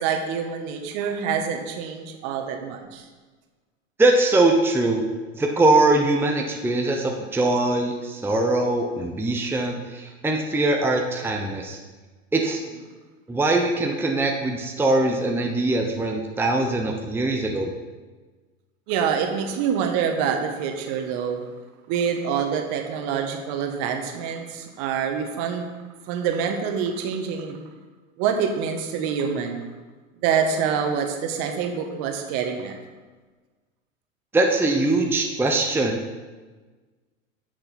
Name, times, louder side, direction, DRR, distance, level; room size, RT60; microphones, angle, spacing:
voice 1, 0.0-3.0 18.9-21.4 21.9-25.7 26.1-27.6 28.2-29.7 30.2-32.8, right 7 dB, 50° right, 5 dB, 1.5 m, -26 dB
voice 2, 4.0-5.1 5.3-11.8 12.3-12.6 13.3-17.7 34.3-36.0, right 2 dB, 5° right, 2 dB, 0.8 m, -22 dB
9.7 x 6.7 x 4.3 m, 1.3 s
hypercardioid pair, 95°, 39 cm